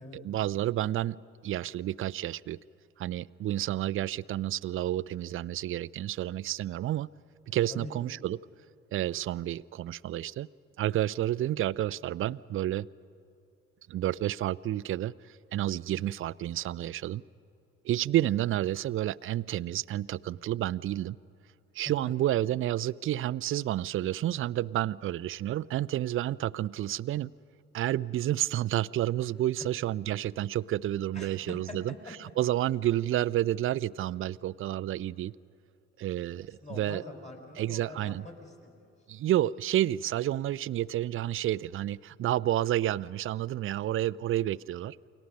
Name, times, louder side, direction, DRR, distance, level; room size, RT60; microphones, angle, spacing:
voice 1, 0.1-2.6 3.0-7.1 7.5-8.4 8.9-10.5 10.8-12.9 13.9-17.2 17.8-21.2 21.7-27.3 27.7-31.9 32.4-35.3 36.0-37.0 37.6-38.3 39.1-45.0, right 13 dB, 35° right, 21 dB, 0.4 m, -30 dB
voice 2, 31.1-31.8 36.3-38.9, left 2 dB, 15° left, 3 dB, 5.1 m, -45 dB
29.5 x 23.0 x 5.3 m, 2.6 s
figure-of-eight pair, 50°, 40 cm